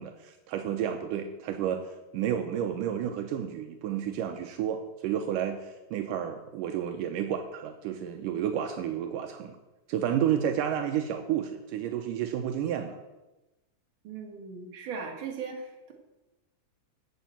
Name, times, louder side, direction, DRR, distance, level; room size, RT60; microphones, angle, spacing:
voice 1, 0.0-1.8 2.1-9.6 9.9-13.0, right 9 dB, 80° right, 5 dB, 2.2 m, -31 dB
voice 2, 14.0-15.9, right 5 dB, 45° right, 0 dB, 2.2 m, -38 dB
8.8 x 7.2 x 8.2 m, 1.1 s
omnidirectional pair, 3.9 m